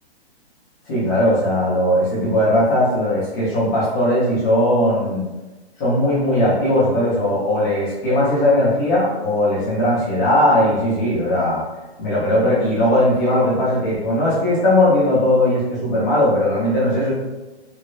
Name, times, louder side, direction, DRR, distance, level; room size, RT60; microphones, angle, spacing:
voice 1, 0.9-5.2 5.8-11.6 12.0-17.1, left 1 dB, 15° left, -8 dB, 0.6 m, -18 dB
3.0 x 2.7 x 2.2 m, 1.1 s
hypercardioid pair, 160°, 32 cm